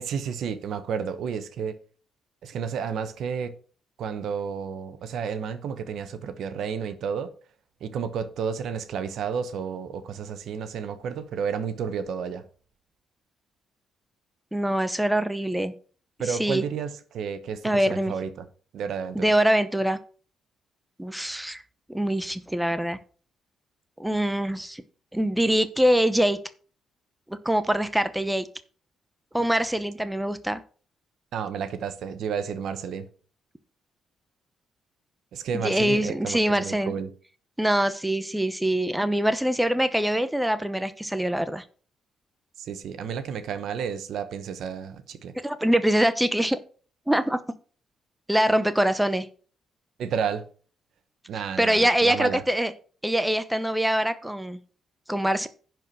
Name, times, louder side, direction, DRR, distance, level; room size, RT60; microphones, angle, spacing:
voice 1, 0.0-1.8 2.4-3.5 4.0-7.3 7.8-12.5 16.2-18.3 18.7-19.3 31.3-33.1 35.3-37.1 42.6-45.3 50.0-50.4 51.3-52.4, right 7 dB, 70° right, 1.2 m, -31 dB
voice 2, 14.5-15.7 16.3-16.6 17.6-18.1 19.1-20.0 21.0-21.6 21.9-23.0 24.0-24.8 25.1-26.4 27.3-28.5 29.3-30.6 35.6-36.9 37.6-41.6 45.4-46.6 47.1-47.4 48.3-49.3 51.6-52.7 53.0-54.6 55.1-55.5, right 1 dB, 5° right, 0.9 m, -24 dB
10.5 x 4.7 x 6.3 m
cardioid pair, 90°, 0 cm